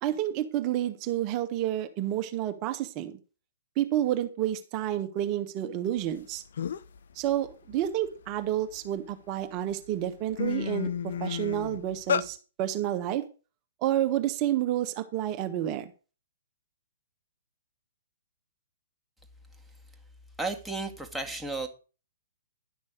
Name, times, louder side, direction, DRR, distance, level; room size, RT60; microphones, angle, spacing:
voice 1, 0.0-3.2 3.8-6.4 7.1-10.9 11.2-13.2 13.8-15.9, right 12 dB, 30° right, 8 dB, 1.4 m, -29 dB
sound 1, 6.2-6.3 6.6-7.0 7.4-9.0 9.6-9.7 10.1-12.3, left 7 dB, 60° left, 0.7 m, -31 dB
voice 2, 20.4-21.7, right 3 dB, 5° right, 1 dB, 2.0 m, -33 dB
11.5 x 6.1 x 6.4 m, 0.34 s
figure-of-eight pair, 120°, 0 cm